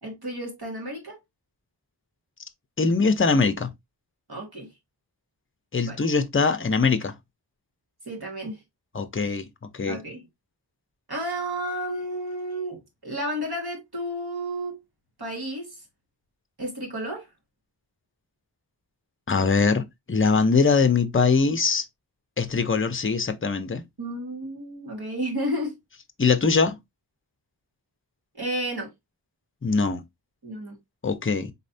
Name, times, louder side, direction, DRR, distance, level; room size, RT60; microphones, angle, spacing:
voice 1, 0.0-1.2 4.3-4.7 5.8-6.0 8.1-8.6 9.9-10.3 11.1-14.8 15.2-15.8 16.6-17.3 24.0-25.8 28.4-28.9 30.4-30.8, right 1 dB, 55° right, 1.9 m, -32 dB
voice 2, 2.8-3.7 5.7-7.1 8.9-9.5 9.7-10.0 19.3-21.8 22.4-23.8 26.2-26.8 29.6-30.0 31.0-31.5, left 4 dB, 30° left, 0.6 m, -22 dB
4.2 x 3.2 x 2.6 m
wide cardioid pair, 45°, 44 cm